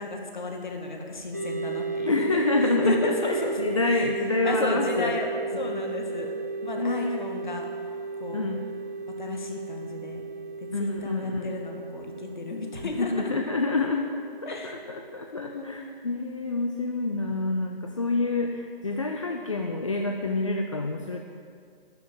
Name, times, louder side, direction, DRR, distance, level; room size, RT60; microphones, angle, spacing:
voice 1, 0.0-2.4 2.8-3.6 3.9-4.1 4.4-5.3 5.5-6.3 6.6-7.7 8.2-8.5 9.2-10.2 10.6-13.1 14.5-14.8 15.3-15.8, left 3 dB, 50° left, 2 dB, 2.0 m, -33 dB
sound 1, 1.3-15.2, right 4 dB, 20° right, 0.4 m, -34 dB
voice 2, 2.1-5.2 5.5-5.8 6.6-7.2 8.3-8.7 10.7-11.5 13.0-21.2, left 3 dB, 35° left, 3 dB, 0.5 m, -28 dB
12.5 x 6.1 x 9.2 m, 2.2 s
figure-of-eight pair, 150°, 30 cm